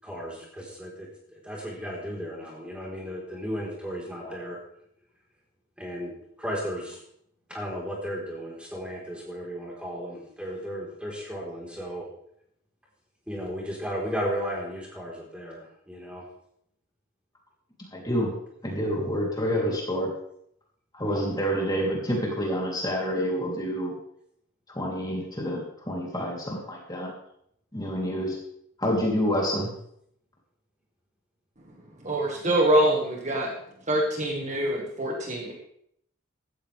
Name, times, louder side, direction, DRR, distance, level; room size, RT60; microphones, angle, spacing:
voice 1, 0.0-4.6 5.8-6.1 6.4-7.0 7.5-12.1 13.3-16.2, equal, 5° right, -3 dB, 4.3 m, -35 dB
voice 2, 17.9-18.3 18.6-20.1 20.9-23.9 24.7-27.1 27.7-28.4 28.8-29.7, equal, 20° left, -3 dB, 3.4 m, -28 dB
voice 3, 32.0-33.5 33.9-35.5, right 1 dB, 35° right, -1 dB, 1.9 m, -24 dB
15.5 x 13.5 x 3.5 m, 0.70 s
head